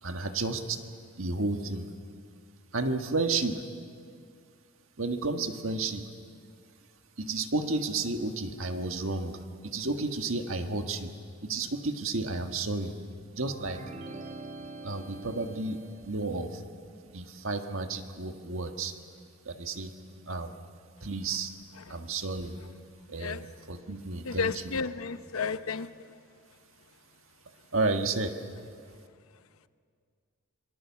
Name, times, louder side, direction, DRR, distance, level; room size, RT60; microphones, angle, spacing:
voice 1, 0.0-0.8 1.2-1.9 2.7-3.6 5.0-6.0 7.2-11.1 11.4-12.9 13.3-13.8 14.8-16.6 17.1-18.9 19.4-19.9 20.3-20.5 21.0-21.5 21.9-22.6 23.1-24.7 27.7-28.3, right 3 dB, 70° right, 6 dB, 1.6 m, -32 dB
sound 1, 13.5-16.3, right 2 dB, 35° right, 1.2 m, -44 dB
voice 2, 24.3-25.9, left 5 dB, 80° left, 12 dB, 0.8 m, -32 dB
26.0 x 23.0 x 7.3 m, 2.2 s
head